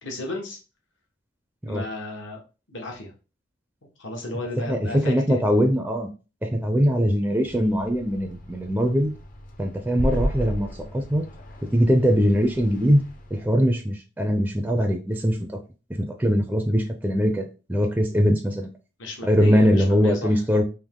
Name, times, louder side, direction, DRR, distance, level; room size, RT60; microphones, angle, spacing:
voice 1, 0.0-0.6 1.7-2.4 2.7-3.1 4.0-5.4 19.0-20.3, left 1 dB, 75° left, 1 dB, 1.2 m, -34 dB
voice 2, 4.7-6.1 6.4-9.1 9.6-10.7 10.9-11.2 11.7-13.0 13.3-15.4 16.0-18.7 19.2-20.6, equal, 10° right, 3 dB, 0.4 m, -21 dB
sound 1, 7.4-13.6, equal, 45° left, 0.7 m, -34 dB
3.6 x 2.8 x 3.6 m, 0.32 s
head